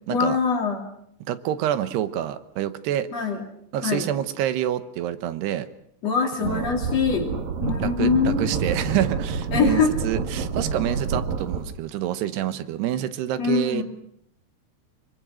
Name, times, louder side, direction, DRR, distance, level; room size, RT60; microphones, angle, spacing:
voice 1, 0.1-0.9 3.1-3.5 3.8-4.1 6.0-7.3 7.6-8.5 9.5-10.0 13.4-13.8, left 5 dB, 40° left, 2 dB, 3.5 m, -23 dB
voice 2, 1.3-3.1 3.7-5.7 6.4-6.7 7.8-13.8, right 11 dB, 80° right, 12 dB, 3.1 m, -27 dB
sound 1, 6.4-11.6, right 5 dB, 60° right, 3.5 m, -28 dB
24.5 x 24.0 x 6.3 m, 0.73 s
omnidirectional pair, 4.8 m